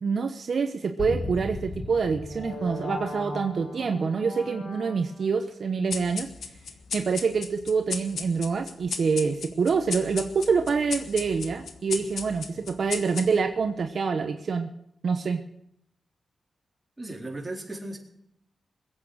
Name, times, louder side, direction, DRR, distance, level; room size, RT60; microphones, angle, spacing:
voice 1, 0.0-6.3 6.9-14.7 15.0-15.4, right 5 dB, 65° right, 6 dB, 1.0 m, -26 dB
sound 1, 1.0-5.4, left 2 dB, 60° left, 5.9 m, -36 dB
sound 2, 5.9-13.6, left 6 dB, 85° left, 1.4 m, -36 dB
voice 2, 17.0-18.0, right 2 dB, 20° right, -1 dB, 4.1 m, -36 dB
21.5 x 8.7 x 6.4 m, 0.75 s
wide cardioid pair, 95°, 0 cm